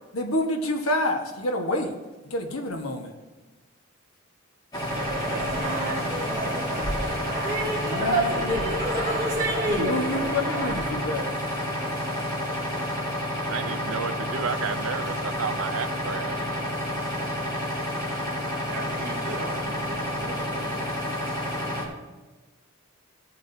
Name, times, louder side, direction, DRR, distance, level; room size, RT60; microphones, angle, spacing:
voice 1, 0.1-1.9 2.2-3.1 7.8-8.7 9.7-11.4, left 1 dB, 85° left, 3 dB, 1.4 m, -28 dB
sound 1, 4.7-21.9, left 1 dB, 20° left, 1.9 m, -30 dB
sound 2, 4.9-10.9, right 2 dB, 20° right, 2.7 m, -29 dB
voice 2, 13.5-16.3, right 6 dB, 85° right, 10 dB, 0.5 m, -32 dB
voice 3, 18.7-20.8, right 2 dB, 45° right, -1 dB, 1.6 m, -39 dB
17.0 x 8.2 x 2.8 m, 1.2 s
head